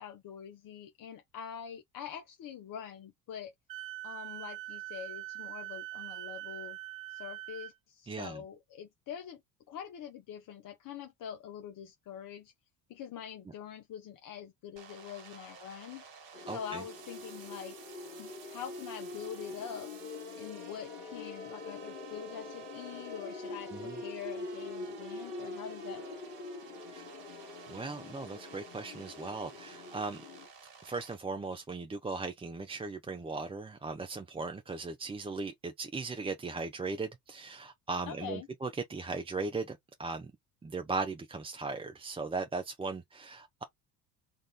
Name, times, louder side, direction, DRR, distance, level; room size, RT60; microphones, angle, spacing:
voice 1, 0.0-3.5 4.0-6.8 7.1-9.4 9.7-12.5 12.9-16.0 16.4-17.8 18.2-19.9 20.4-26.2 38.1-38.5, left 8 dB, 40° left, 0.8 m, -44 dB
Wind instrument woodwind instrument, 3.7-7.7, right 17 dB, 85° right, 0.6 m, -43 dB
voice 2, 8.1-8.4 16.5-16.8 23.7-24.0 26.9-27.1 27.7-30.2 30.8-40.3 40.6-43.6, right 3 dB, 10° right, 0.6 m, -38 dB
sound 1, 14.8-31.2, right 5 dB, 60° right, 1.8 m, -51 dB
sound 2, 16.3-30.5, left 3 dB, 75° left, 1.1 m, -45 dB
3.9 x 2.5 x 3.7 m
hypercardioid pair, 60°, 48 cm